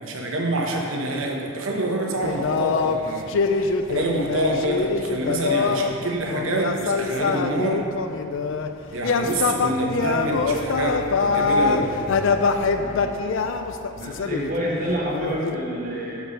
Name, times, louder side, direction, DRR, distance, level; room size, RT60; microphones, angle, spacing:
voice 1, 0.0-7.8 8.9-11.9, right 1 dB, 70° right, 0 dB, 1.0 m, -26 dB
sound 1, 2.2-5.9 6.3-8.7 9.0-15.6, left 4 dB, 60° left, 0.4 m, -24 dB
voice 2, 12.7-13.4 14.0-16.2, equal, 40° right, -5 dB, 1.4 m, -29 dB
6.8 x 4.7 x 6.2 m, 2.7 s
head